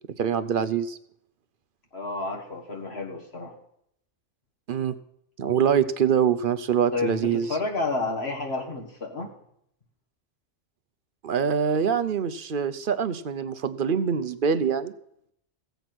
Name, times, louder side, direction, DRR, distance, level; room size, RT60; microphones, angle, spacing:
voice 1, 0.2-1.0 4.7-4.9 5.4-7.5 11.2-14.9, right 7 dB, 55° right, 13 dB, 0.8 m, -24 dB
voice 2, 1.9-3.5 6.9-9.3, left 3 dB, 60° left, 1 dB, 2.0 m, -30 dB
15.5 x 8.0 x 6.0 m, 0.72 s
omnidirectional pair, 1.2 m